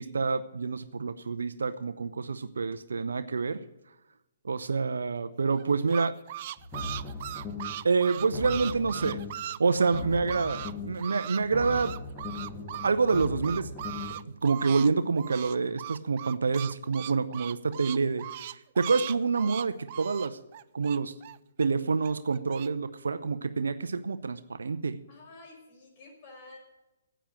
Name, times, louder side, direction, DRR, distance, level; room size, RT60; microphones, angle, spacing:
voice 1, 0.0-3.6 4.4-6.1 7.8-9.2 9.6-11.9 12.8-13.7 14.1-20.4 20.7-21.1 21.6-25.0, right 4 dB, 75° right, 11 dB, 0.7 m, -27 dB
sound 1, 5.5-10.7 11.0-14.9 15.2-21.7 22.0-22.7, right 13 dB, 45° right, 0.4 m, -39 dB
sound 2, 6.6-7.9 8.2-9.5 9.8-11.1 11.4-14.2, left 3 dB, 10° left, 2.2 m, -38 dB
voice 2, 25.1-26.6, left 2 dB, 40° left, 0 dB, 5.3 m, -50 dB
10.0 x 8.9 x 9.3 m, 0.96 s
figure-of-eight pair, 130°, 0 cm